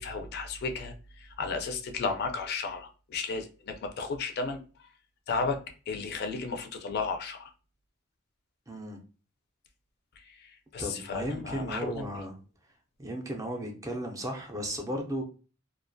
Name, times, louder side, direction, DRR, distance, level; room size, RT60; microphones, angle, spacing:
voice 1, 0.0-4.6 5.3-5.6 5.9-7.5 10.3-12.1, left 4 dB, 50° left, 0.3 m, -34 dB
voice 2, 8.7-9.0 10.8-12.4 13.0-15.2, right 1 dB, 15° right, 0.4 m, -35 dB
2.3 x 2.2 x 2.5 m
head